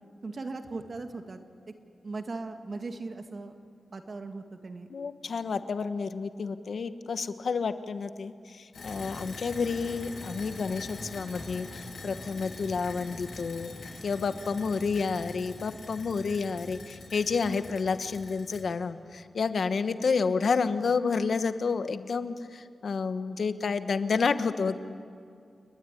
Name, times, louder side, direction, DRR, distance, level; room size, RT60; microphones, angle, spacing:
voice 1, 0.2-1.4 2.0-3.6 3.9-4.9, right 3 dB, 50° right, 6 dB, 2.0 m, -38 dB
voice 2, 4.9-13.7 14.0-24.7, left 5 dB, 70° left, 10 dB, 1.2 m, -30 dB
sound 1, 8.7-18.6, left 2 dB, 85° left, 7.9 m, -43 dB
29.5 x 20.0 x 9.9 m, 2.3 s
wide cardioid pair, 130°, 0 cm